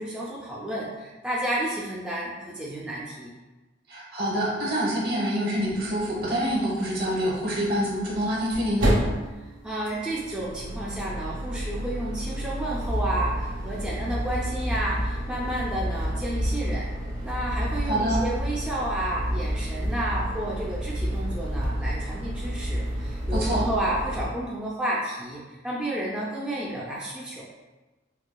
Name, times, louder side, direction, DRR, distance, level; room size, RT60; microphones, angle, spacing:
voice 1, 0.0-3.3 9.4-16.9 17.2-27.5, right 1 dB, 5° right, -7 dB, 0.4 m, -31 dB
voice 2, 3.9-9.0 17.9-18.2 23.3-23.6, equal, 55° right, -5 dB, 1.1 m, -26 dB
sound 1, 5.7-5.8 6.0-6.1 8.0-24.3, equal, 85° right, 1.5 m, -29 dB
4.6 x 2.3 x 2.2 m, 1.2 s
head